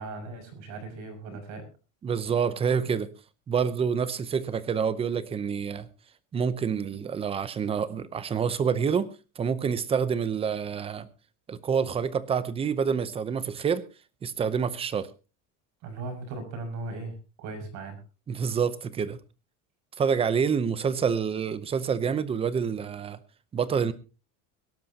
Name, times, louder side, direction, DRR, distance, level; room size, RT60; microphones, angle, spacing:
voice 1, 0.0-1.7 15.8-18.0, right 3 dB, 50° right, 6 dB, 6.2 m, -38 dB
voice 2, 2.0-3.1 3.5-5.9 6.3-9.1 9.4-11.1 11.5-13.8 14.2-15.1 18.3-19.2 20.0-23.2 23.5-23.9, right 6 dB, 15° right, 15 dB, 0.7 m, -27 dB
23.5 x 12.0 x 2.9 m, 0.32 s
cardioid pair, 165°, 37 cm